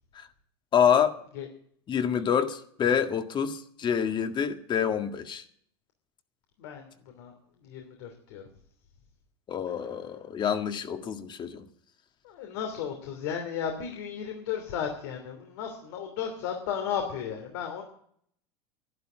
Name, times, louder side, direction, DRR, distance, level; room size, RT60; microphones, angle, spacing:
voice 1, 0.7-1.2 1.9-5.4 9.5-11.7, left 8 dB, 35° left, 1.8 m, -27 dB
voice 2, 7.6-8.4 12.2-17.8, left 8 dB, 70° left, 3.0 m, -34 dB
12.0 x 10.5 x 9.1 m
hypercardioid pair, 105°, 14 cm